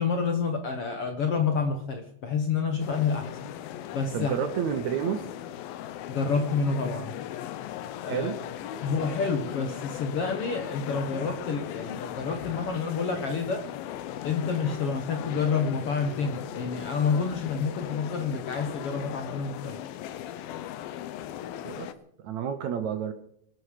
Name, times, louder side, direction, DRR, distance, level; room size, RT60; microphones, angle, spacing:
voice 1, 0.0-3.5 3.9-4.4 6.1-7.1 8.0-8.3 8.8-13.6 14.2-19.8, left 5 dB, 60° left, 5 dB, 1.6 m, -28 dB
sound 1, 2.8-21.9, left 11 dB, 85° left, 2.7 m, -38 dB
voice 2, 4.1-5.2 8.1-8.4 21.6-21.9 22.2-23.1, right 8 dB, 65° right, 9 dB, 2.0 m, -30 dB
25.5 x 10.5 x 5.0 m, 0.70 s
omnidirectional pair, 4.1 m